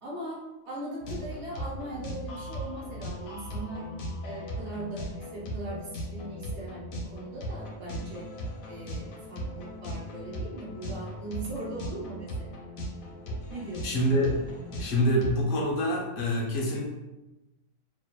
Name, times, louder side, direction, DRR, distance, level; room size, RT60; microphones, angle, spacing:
voice 1, 0.0-0.4 0.6-3.9 4.2-8.3 8.7-12.7 13.5-13.9, right 2 dB, 60° right, -6 dB, 1.0 m, -39 dB
sound 1, 1.0-15.3, equal, 80° left, 1.0 m, -38 dB
voice 2, 13.8-14.3 14.8-16.8, equal, 60° left, -2 dB, 0.6 m, -26 dB
2.7 x 2.1 x 2.2 m, 1.0 s
omnidirectional pair, 1.4 m